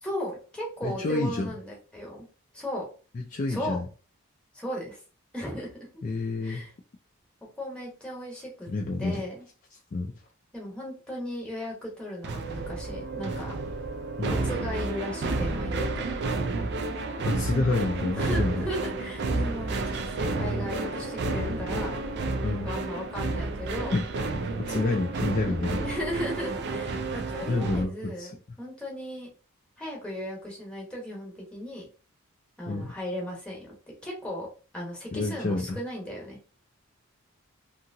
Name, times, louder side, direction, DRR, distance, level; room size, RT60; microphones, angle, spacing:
voice 1, 0.0-2.3 2.5-2.9 3.5-3.8 4.5-5.0 5.3-5.9 6.4-6.7 7.6-8.7 9.0-9.5 10.5-13.5 14.2-16.1 18.1-21.9 22.6-24.0 25.8-29.3 29.8-31.9 32.6-34.5 34.7-36.4, equal, 5° left, 0.9 m, -36 dB
voice 2, 0.8-1.5 3.1-3.9 6.0-6.7 8.7-9.2 9.9-10.1 14.2-14.4 17.2-18.6 22.4-22.7 23.9-24.1 24.6-25.9 27.5-28.3 32.7-32.9 35.1-35.8, left 2 dB, 35° left, 0.3 m, -29 dB
sound 1, 12.2-27.9, right 3 dB, 50° right, 0.4 m, -31 dB
2.8 x 2.7 x 2.6 m
head